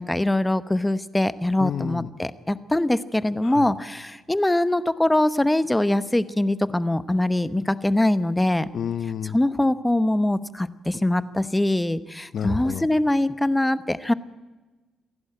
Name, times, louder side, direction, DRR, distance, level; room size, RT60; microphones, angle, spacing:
voice 1, 0.0-8.7 9.3-14.1, left 1 dB, 10° left, 14 dB, 1.0 m, -23 dB
voice 2, 1.6-2.1 3.4-3.7 8.7-9.4 12.3-12.9, left 8 dB, 60° left, 15 dB, 0.9 m, -30 dB
28.0 x 11.5 x 8.9 m, 1.2 s
cardioid pair, 90°, 0 cm